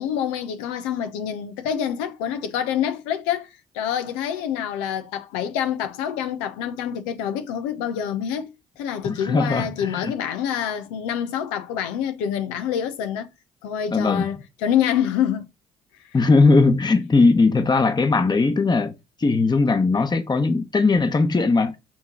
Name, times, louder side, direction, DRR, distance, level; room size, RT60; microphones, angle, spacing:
voice 1, 0.0-3.5 3.7-13.3 13.6-15.5, left 9 dB, 90° left, 0.8 m, -26 dB
voice 2, 9.0-10.1 13.9-14.3 16.1-18.9 19.2-21.8, left 3 dB, 25° left, 1.0 m, -19 dB
7.3 x 3.0 x 5.9 m
supercardioid pair, 60°, 16 cm